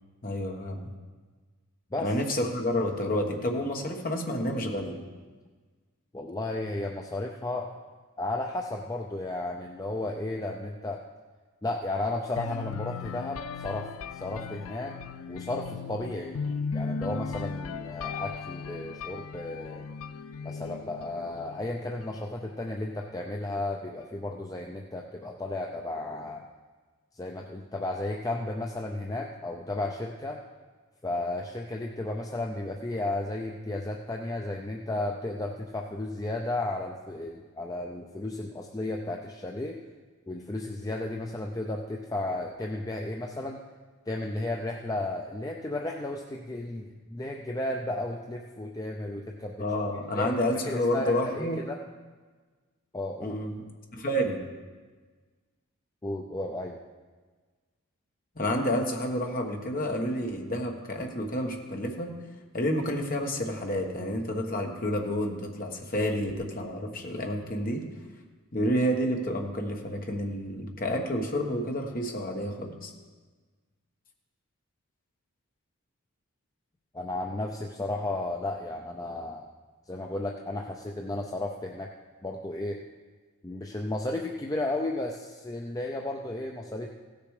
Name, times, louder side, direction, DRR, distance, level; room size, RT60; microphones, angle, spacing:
voice 1, 0.2-0.9 2.0-5.0 49.6-51.6 53.2-53.6 53.9-54.4 58.3-62.1 62.5-67.9 68.5-72.9, equal, 40° left, 2 dB, 1.4 m, -29 dB
voice 2, 6.1-7.7 8.2-11.0 11.6-15.0 15.3-16.4 16.7-19.9 20.4-26.4 27.1-30.4 31.0-39.8 40.3-43.6 44.1-49.6 50.1-50.4 50.6-51.8 52.9-53.4 56.0-56.8 76.9-79.5 79.9-81.9 82.2-82.8 83.4-86.9, left 2 dB, 15° left, 1 dB, 0.5 m, -33 dB
sound 1, 12.4-22.2, left 5 dB, 75° left, 0.4 m, -37 dB
16.0 x 6.8 x 4.9 m, 1.4 s
head